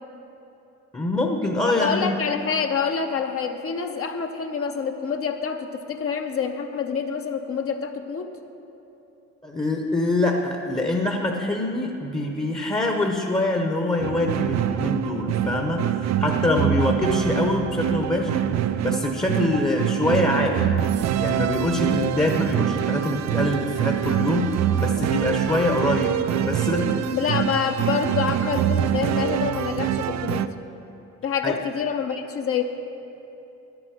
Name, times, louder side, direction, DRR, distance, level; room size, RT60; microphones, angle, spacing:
voice 1, 0.9-2.3 9.4-18.5 18.8-20.9 21.2-27.2 31.4-31.6, left 2 dB, 15° left, 3 dB, 0.8 m, -25 dB
voice 2, 1.6-8.3 16.4-16.7 27.1-30.5 31.2-32.6, left 6 dB, 50° left, 5 dB, 0.8 m, -27 dB
sound 1, 14.0-30.5, right 10 dB, 60° right, 0.5 m, -25 dB
10.5 x 7.9 x 6.4 m, 3.0 s
cardioid pair, 90°, 30 cm